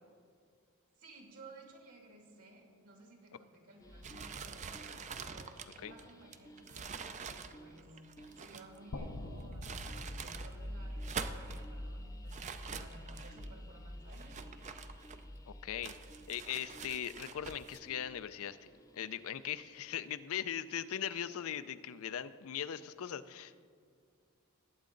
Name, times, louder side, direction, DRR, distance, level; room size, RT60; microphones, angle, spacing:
voice 1, 0.9-8.0 8.4-14.3, right 2 dB, 70° right, 0 dB, 2.8 m, -56 dB
sound 1, 3.8-19.7, equal, 15° left, 0.7 m, -49 dB
sound 2, 4.0-8.8 9.4-10.5 10.9-11.7 12.3-13.5 14.1-15.4 15.8-17.8, right 6 dB, 30° right, 0.5 m, -46 dB
sound 3, 8.9-13.0, left 1 dB, 80° left, 0.8 m, -48 dB
voice 2, 15.5-15.9 16.3-18.6 18.9-23.6, left 9 dB, 65° left, 13 dB, 0.4 m, -39 dB
19.5 x 8.4 x 3.9 m, 2.1 s
head